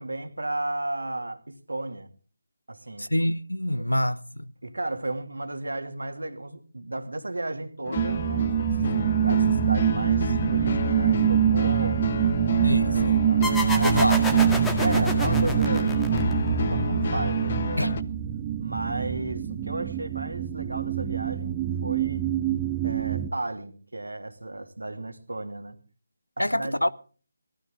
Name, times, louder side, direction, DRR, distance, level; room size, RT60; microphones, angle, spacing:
voice 1, 0.0-2.1 2.7-3.1 4.6-12.3 12.8-13.4 13.7-14.3 14.8-15.9 16.3-16.4 16.7-17.9 18.6-22.2 22.8-25.8 26.4-26.8, right 2 dB, 70° right, 2.8 m, -34 dB
voice 2, 3.0-4.5 12.6-13.2 13.8-14.2 17.8-17.9 26.4-26.9, left 1 dB, 90° left, 1.0 m, -26 dB
sound 1, 7.8-18.0, left 5 dB, 40° left, 1.1 m, -31 dB
sound 2, 8.0-23.3, right 10 dB, 20° right, 0.8 m, -25 dB
sound 3, 13.4-16.7, left 1 dB, 5° left, 1.8 m, -30 dB
19.0 x 15.0 x 3.8 m
figure-of-eight pair, 155°, 0 cm